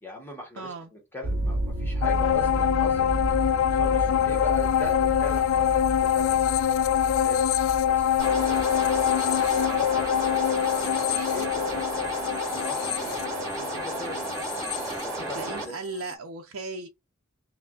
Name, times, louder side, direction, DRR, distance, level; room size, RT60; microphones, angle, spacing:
voice 1, 0.0-3.2 3.7-7.5 7.8-8.6 9.2-10.4 10.8-12.1 12.5-14.2 14.7-15.4, left 2 dB, 10° left, 1.0 m, -41 dB
voice 2, 0.6-0.9 15.3-16.9, right 3 dB, 80° right, 0.6 m, -36 dB
sound 1, 1.2-12.0, right 1 dB, 45° right, 0.8 m, -33 dB
sound 2, 2.0-15.7 16.1-16.2, left 9 dB, 65° left, 0.3 m, -25 dB
sound 3, 8.2-15.6, right 2 dB, 15° right, 2.0 m, -33 dB
5.6 x 2.1 x 2.4 m
head